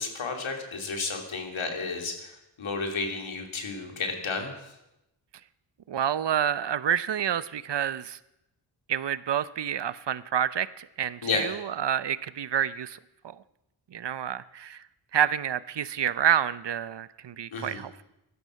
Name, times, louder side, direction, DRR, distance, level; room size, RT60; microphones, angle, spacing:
voice 1, 0.0-4.5 11.2-11.5 17.5-17.8, left 4 dB, 75° left, 3 dB, 3.0 m, -32 dB
voice 2, 5.9-8.2 8.9-13.0 13.2-13.3 13.9-14.8 15.1-18.0, right 9 dB, 60° right, 16 dB, 0.7 m, -28 dB
16.0 x 12.5 x 6.5 m, 0.90 s
cardioid pair, 55°, 48 cm